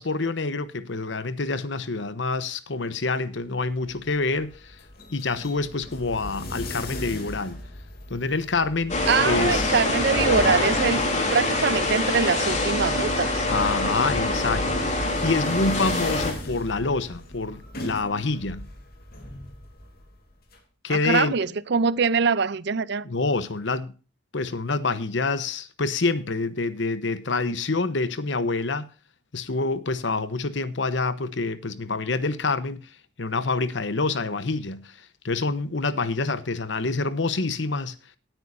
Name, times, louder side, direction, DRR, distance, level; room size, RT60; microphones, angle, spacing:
voice 1, 0.0-4.8 5.1-7.6 8.1-9.8 13.5-18.7 20.8-21.4 23.0-23.9 24.3-28.9 29.3-32.9 33.2-35.0 35.2-38.0, left 3 dB, 70° left, 1.0 m, -27 dB
sound 1, 3.5-20.6, left 1 dB, 55° left, 2.7 m, -40 dB
sound 2, 8.9-16.3, left 2 dB, 40° left, 3.2 m, -24 dB
voice 2, 9.1-11.0 11.3-13.5 20.9-23.1, right 5 dB, 60° right, 0.6 m, -23 dB
18.0 x 9.1 x 2.7 m
head